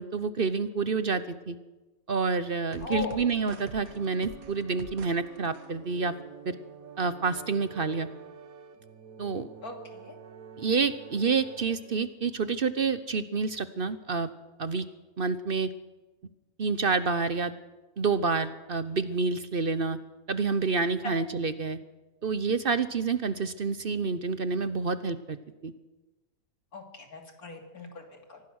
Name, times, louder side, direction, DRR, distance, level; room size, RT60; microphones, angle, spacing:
voice 1, 0.0-1.6 2.1-6.1 6.5-6.6 7.0-8.1 9.2-9.5 10.6-14.3 14.6-14.9 15.2-15.7 16.6-17.5 18.0-20.0 20.3-21.8 22.2-25.4 25.6-25.7, right 4 dB, 45° right, 13 dB, 0.8 m, -28 dB
sound 1, 2.7-12.1, right 6 dB, 60° right, 1.7 m, -46 dB
voice 2, 2.8-3.2 9.6-10.1 21.0-21.2 26.7-28.4, left 4 dB, 65° left, 3 dB, 3.3 m, -38 dB
24.5 x 17.5 x 6.4 m, 1.1 s
omnidirectional pair, 1.7 m